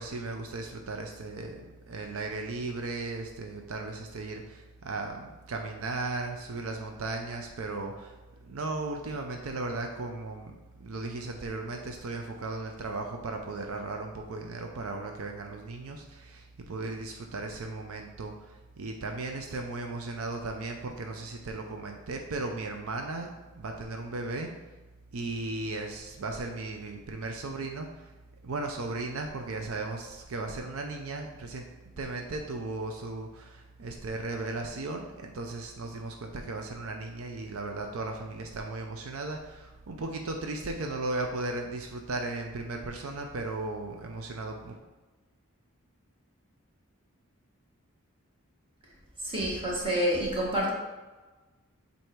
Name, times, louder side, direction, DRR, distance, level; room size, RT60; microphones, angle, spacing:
voice 1, 0.0-8.2 8.4-24.5 25.1-28.1 28.4-31.7 32.0-44.8, right 2 dB, 80° right, 3 dB, 0.6 m, -36 dB
voice 2, 49.2-50.7, equal, 25° right, -5 dB, 1.5 m, -28 dB
7.8 x 2.8 x 4.5 m, 1.2 s
head